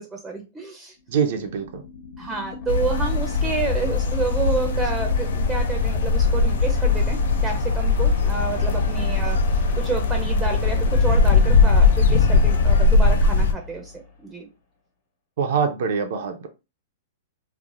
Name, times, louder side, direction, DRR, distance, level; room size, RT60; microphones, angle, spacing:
voice 1, 0.0-0.9 2.2-9.4 9.7-13.9 14.2-14.5, right 4 dB, 10° right, 0.5 m, -29 dB
sound 1, 1.0-14.1, left 4 dB, 50° left, 1.1 m, -33 dB
voice 2, 1.1-1.8 15.4-16.5, right 6 dB, 65° right, 0.5 m, -24 dB
sound 2, 2.7-13.5, left 4 dB, 80° left, 0.4 m, -20 dB
3.2 x 2.0 x 2.4 m
hypercardioid pair, 140°, 0 cm